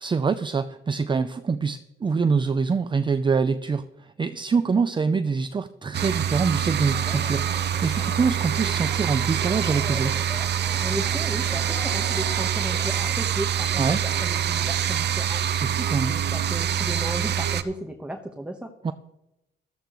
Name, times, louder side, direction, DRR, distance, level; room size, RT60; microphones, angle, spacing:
voice 1, 0.0-10.2 13.8-14.0 15.5-16.1 18.8-18.9, right 5 dB, 25° right, 11 dB, 0.5 m, -25 dB
sound 1, 5.9-17.6, right 9 dB, 60° right, 0.8 m, -25 dB
Crowd, 6.9-13.1, left 2 dB, 15° left, 1.3 m, -41 dB
voice 2, 10.8-15.4 16.0-18.7, right 1 dB, 5° right, 4 dB, 1.2 m, -35 dB
14.0 x 13.5 x 3.1 m, 0.89 s
cardioid pair, 90°, 20 cm